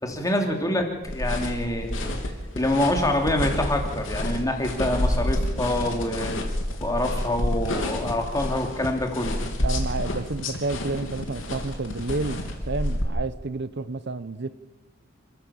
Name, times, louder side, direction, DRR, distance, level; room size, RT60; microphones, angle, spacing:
voice 1, 0.0-2.2 2.5-6.4 6.8-9.4, left 1 dB, 20° left, 3.0 m, -26 dB
sound 1, 1.0-13.0, left 1 dB, 75° left, 3.2 m, -29 dB
voice 2, 9.6-14.5, right 3 dB, 60° right, 0.8 m, -30 dB
28.5 x 14.0 x 7.2 m
head